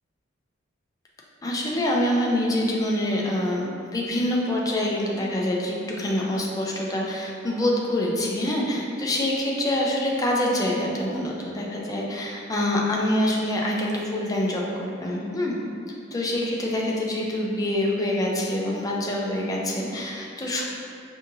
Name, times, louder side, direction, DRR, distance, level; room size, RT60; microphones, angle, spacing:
voice 1, 1.4-3.7 3.9-15.5 16.1-20.6, left 1 dB, 20° left, -3 dB, 0.4 m, -25 dB
5.0 x 2.7 x 2.6 m, 2.4 s
head